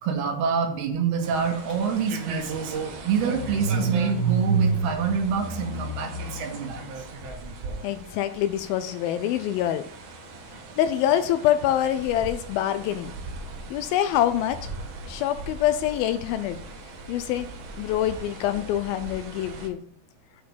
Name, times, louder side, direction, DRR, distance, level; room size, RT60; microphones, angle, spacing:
voice 1, 0.0-2.8 3.0-6.8, right 6 dB, 85° right, 3 dB, 3.4 m, -26 dB
sound 1, 1.2-19.7, right 3 dB, 60° right, 2.3 m, -39 dB
Car / Engine starting, 1.7-1.8 2.1-7.3, right 4 dB, 30° left, 1.5 m, -29 dB
voice 2, 7.8-9.9 10.5-13.1 13.7-14.7 15.1-16.6 17.1-17.5 17.8-19.8, left 11 dB, 80° left, 11 dB, 2.2 m, -25 dB
8.4 x 4.7 x 7.0 m, 0.64 s
omnidirectional pair, 4.5 m